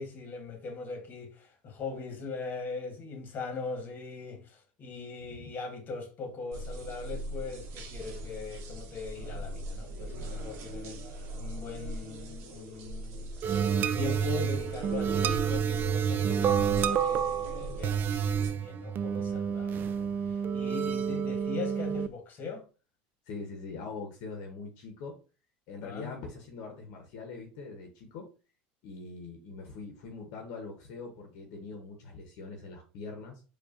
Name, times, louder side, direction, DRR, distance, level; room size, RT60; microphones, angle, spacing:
voice 1, 0.0-13.3 13.7-22.6 25.8-26.1, left 4 dB, 35° left, 1.2 m, -40 dB
sound 1, 6.5-18.5, right 1 dB, 55° right, 0.8 m, -41 dB
sound 2, 13.4-22.1, right 7 dB, 40° right, 0.3 m, -29 dB
voice 2, 23.3-25.2 25.7-28.3 28.8-33.4, left 4 dB, 65° left, 0.8 m, -42 dB
4.6 x 2.4 x 2.5 m
supercardioid pair, 100°, 5 cm